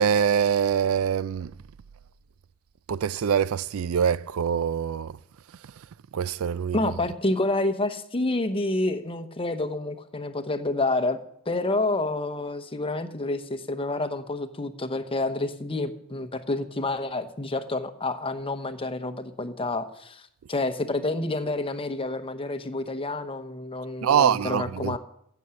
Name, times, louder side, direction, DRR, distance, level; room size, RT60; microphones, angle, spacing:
voice 1, 0.0-1.5 2.9-5.1 6.1-6.8 24.0-24.9, right 8 dB, 75° right, 0.4 m, -24 dB
voice 2, 6.7-11.2 11.5-25.0, left 2 dB, 25° left, 1.0 m, -28 dB
15.5 x 7.0 x 7.7 m
head